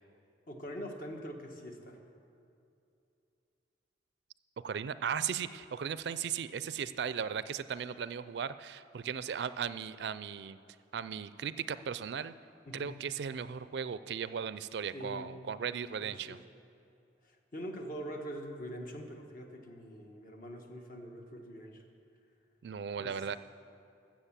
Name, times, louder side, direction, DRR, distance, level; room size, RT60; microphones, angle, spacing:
voice 1, 0.5-2.0 12.6-12.9 14.9-15.3 16.0-16.4 17.2-21.8 23.0-23.4, equal, 50° left, 3 dB, 1.3 m, -44 dB
voice 2, 4.6-10.6 10.9-12.3 12.7-16.4 22.6-23.4, right 7 dB, 65° right, 14 dB, 0.4 m, -37 dB
13.5 x 7.5 x 7.4 m, 2.7 s
head